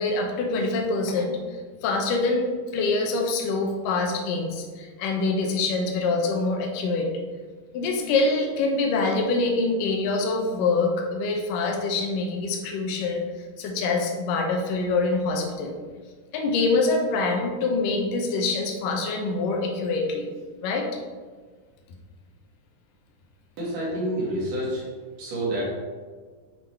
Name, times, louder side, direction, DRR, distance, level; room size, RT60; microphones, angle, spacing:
voice 1, 0.0-1.4 1.8-2.5 2.7-7.1 7.7-13.2 13.6-15.7 16.3-20.3 20.6-20.9, left 3 dB, 75° left, 2 dB, 2.0 m, -25 dB
voice 2, 23.6-24.9 25.2-25.6, right 1 dB, 60° right, -6 dB, 2.9 m, -28 dB
7.7 x 3.8 x 4.3 m, 1.5 s
omnidirectional pair, 4.6 m